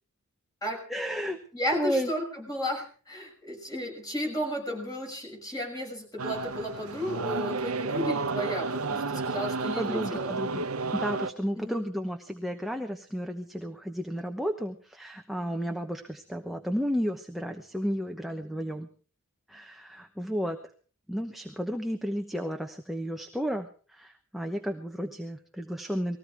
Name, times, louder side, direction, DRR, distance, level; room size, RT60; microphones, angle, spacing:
voice 1, 0.9-1.4 1.7-2.1 9.8-10.6 10.9-18.9 19.5-20.6 21.1-26.2, equal, ahead, 4 dB, 1.0 m, -32 dB
voice 2, 1.5-10.3 11.5-11.8, equal, 15° left, 1 dB, 6.5 m, -33 dB
sound 1, 6.2-11.3, right 4 dB, 90° right, 0.9 m, -31 dB
20.0 x 15.5 x 4.6 m, 0.41 s
head